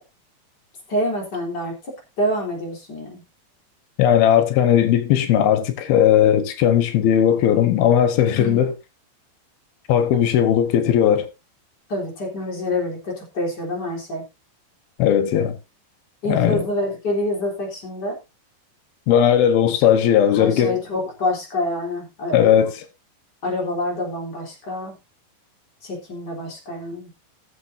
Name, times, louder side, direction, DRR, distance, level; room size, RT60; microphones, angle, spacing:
voice 1, 0.9-3.2 8.4-8.6 11.9-14.2 16.2-18.2 20.3-22.5 23.4-24.9 25.8-27.1, left 1 dB, 25° left, 4.0 m, -27 dB
voice 2, 4.0-8.7 9.9-11.3 15.0-15.6 16.3-16.6 19.1-20.8 22.3-22.9, left 9 dB, 90° left, 3.0 m, -17 dB
19.5 x 7.3 x 2.7 m
omnidirectional pair, 4.3 m